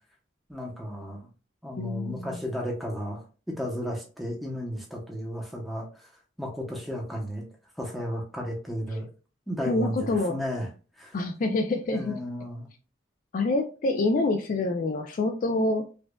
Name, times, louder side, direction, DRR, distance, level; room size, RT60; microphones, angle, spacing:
voice 1, 0.5-1.2 1.6-3.2 3.6-6.1 6.4-7.4 7.8-9.1 9.5-10.7 11.0-11.2 11.9-12.7, equal, ahead, -1 dB, 0.7 m, -33 dB
voice 2, 1.8-2.4 9.7-10.4 11.1-12.2 13.3-15.8, left 2 dB, 45° left, 6 dB, 0.3 m, -26 dB
4.9 x 2.3 x 2.2 m, 0.36 s
head